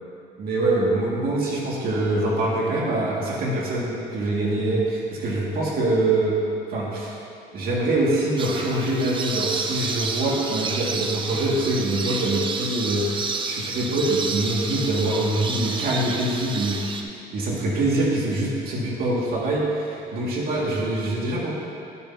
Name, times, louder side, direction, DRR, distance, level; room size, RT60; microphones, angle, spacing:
voice 1, 0.4-6.3 6.7-7.2 7.5-21.5, right 2 dB, 65° right, -5 dB, 2.2 m, -24 dB
sound 1, 8.4-17.0, right 4 dB, 30° right, 0.6 m, -30 dB
12.5 x 6.8 x 2.9 m, 2.5 s
cardioid pair, 110°, 17 cm